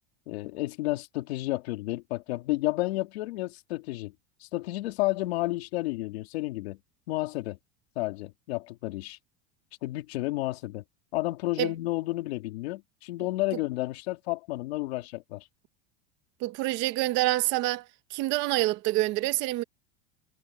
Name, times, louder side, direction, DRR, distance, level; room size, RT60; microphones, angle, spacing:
voice 1, 0.3-4.1 4.4-6.8 7.1-7.6 8.0-9.2 9.8-10.8 11.1-15.4, left 19 dB, 80° left, 2.7 m, -31 dB
voice 2, 16.4-17.9 18.1-19.6, right 18 dB, 35° right, 0.9 m, -26 dB
supercardioid pair, 180°, 31 cm